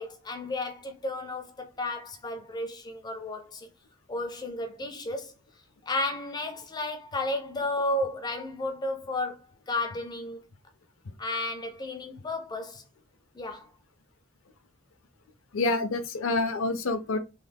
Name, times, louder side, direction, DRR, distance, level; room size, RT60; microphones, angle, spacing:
voice 1, 0.0-3.7 4.1-5.3 5.8-10.4 11.2-12.8 13.3-13.7, left 2 dB, 20° left, 0.4 m, -33 dB
voice 2, 15.5-17.2, left 3 dB, 70° left, 0.5 m, -27 dB
3.2 x 2.0 x 3.4 m
head